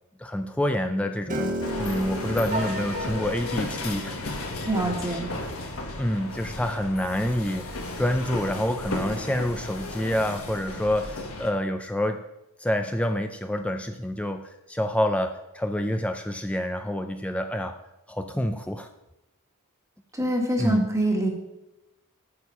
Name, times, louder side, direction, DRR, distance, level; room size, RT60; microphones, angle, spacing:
voice 1, 0.2-4.2 6.0-12.2 12.6-17.8 18.1-18.9 20.6-20.9, left 1 dB, 5° left, 6 dB, 0.4 m, -27 dB
Piano, 1.3-7.5, right 1 dB, 40° right, 1.1 m, -36 dB
sound 1, 1.6-11.5, left 2 dB, 70° left, 1.5 m, -34 dB
voice 2, 4.7-5.3 20.1-21.3, right 1 dB, 15° right, 1 dB, 1.5 m, -25 dB
8.6 x 6.6 x 5.5 m, 0.93 s
head